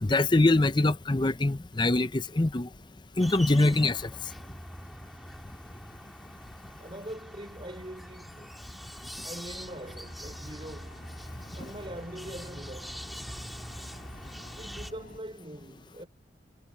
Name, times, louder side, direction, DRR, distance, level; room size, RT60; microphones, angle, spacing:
voice 1, 0.0-2.7 3.2-4.0 11.6-11.7, left 2 dB, 25° left, 0.7 m, -23 dB
sound 1, 3.2-14.9, equal, ahead, 3.4 m, -44 dB
voice 2, 6.8-8.7 9.2-11.1 11.5-13.1 14.6-16.1, right 1 dB, 30° right, 4.7 m, -43 dB
sound 2, 9.6-15.2, left 1 dB, 45° left, 7.5 m, -51 dB
head